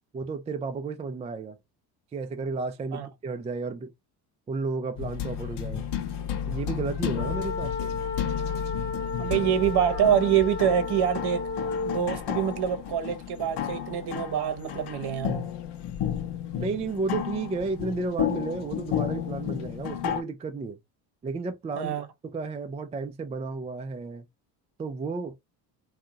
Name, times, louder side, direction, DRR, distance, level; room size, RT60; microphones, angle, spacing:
voice 1, 0.1-1.6 2.1-3.9 4.5-5.9 6.5-8.0 16.6-20.8 21.2-21.9 22.2-24.2 24.8-25.3, right 4 dB, 15° right, 0.3 m, -32 dB
sound 1, 5.0-20.2, left 10 dB, 55° left, 0.8 m, -32 dB
sound 2, 7.1-12.0, left 4 dB, 35° left, 0.9 m, -33 dB
voice 2, 9.2-11.5 11.8-15.4 21.8-22.1, right 9 dB, 50° right, 0.9 m, -25 dB
2.7 x 2.4 x 2.7 m
hypercardioid pair, 65°, 49 cm